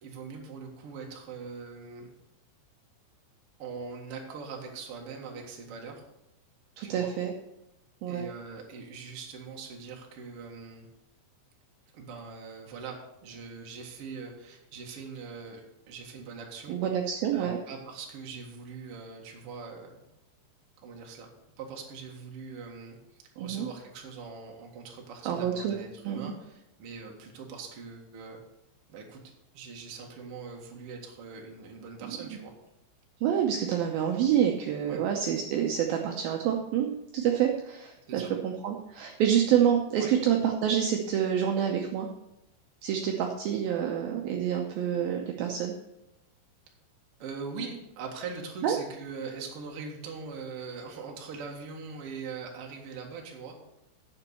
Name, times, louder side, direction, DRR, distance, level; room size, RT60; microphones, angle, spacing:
voice 1, 0.0-2.1 3.6-6.0 6.8-7.1 8.1-10.9 11.9-16.8 17.3-20.0 20.8-21.3 21.6-28.4 28.9-29.2 29.5-32.5 34.9-35.0 38.0-38.3 39.1-39.2 40.0-40.1 47.2-53.6, right 5 dB, 55° right, 1 dB, 1.6 m, -42 dB
voice 2, 6.8-7.3 8.0-8.3 16.7-17.6 23.4-23.7 25.3-25.8 26.0-26.3 33.2-42.1 42.8-45.7 48.6-48.8, right 9 dB, 85° right, 2 dB, 2.1 m, -27 dB
9.9 x 7.3 x 6.8 m, 0.91 s
omnidirectional pair, 5.3 m